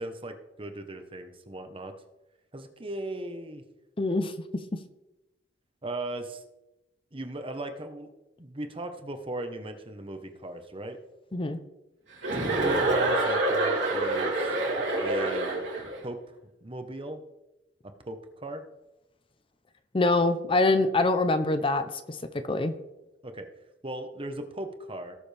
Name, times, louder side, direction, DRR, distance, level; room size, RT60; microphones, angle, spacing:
voice 1, 0.0-1.9 2.5-3.6 5.8-6.4 7.1-8.1 8.4-11.0 12.3-14.4 15.0-15.7 16.0-16.2 16.6-17.2 18.0-18.6 23.2-23.5 23.8-25.2, right 1 dB, 30° right, 7 dB, 1.1 m, -37 dB
voice 2, 4.0-4.3 11.3-11.6 19.9-22.7, left 2 dB, 30° left, 9 dB, 0.7 m, -25 dB
Chuckle chortle, 12.2-16.0, right 2 dB, 75° right, 3.5 m, -26 dB
18.0 x 7.0 x 3.5 m, 0.98 s
head